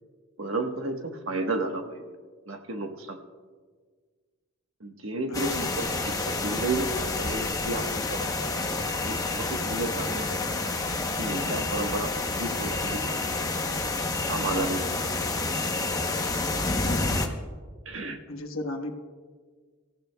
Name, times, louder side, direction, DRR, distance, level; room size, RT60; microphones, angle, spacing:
voice 1, 0.4-2.0 2.5-3.2 4.8-8.7 9.0-10.7 11.2-13.7 14.3-14.9 17.8-18.2, right 2 dB, 70° right, 4 dB, 1.3 m, -33 dB
sound 1, 5.3-17.3, left 3 dB, 15° left, 0.8 m, -29 dB
voice 2, 16.8-17.2 18.3-18.9, left 2 dB, 70° left, 5 dB, 1.1 m, -35 dB
25.5 x 15.0 x 2.3 m, 1.5 s
head